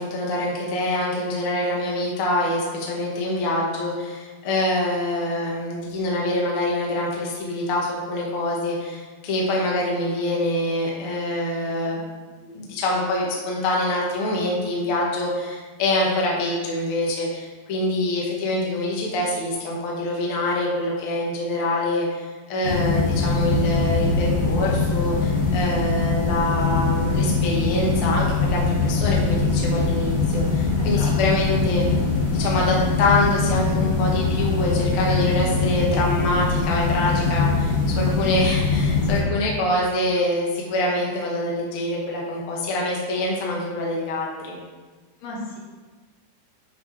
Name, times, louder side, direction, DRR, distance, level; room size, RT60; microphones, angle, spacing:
voice 1, 0.0-12.0 12.5-31.8 32.3-44.6, left 1 dB, 90° left, -3 dB, 1.2 m, -25 dB
sound 1, 22.6-39.2, left 3 dB, 35° left, 2.3 m, -22 dB
voice 2, 30.8-31.2 31.4-31.5 45.2-45.6, left 1 dB, 70° left, -5 dB, 3.9 m, -34 dB
9.4 x 5.9 x 3.3 m, 1.3 s
omnidirectional pair, 4.9 m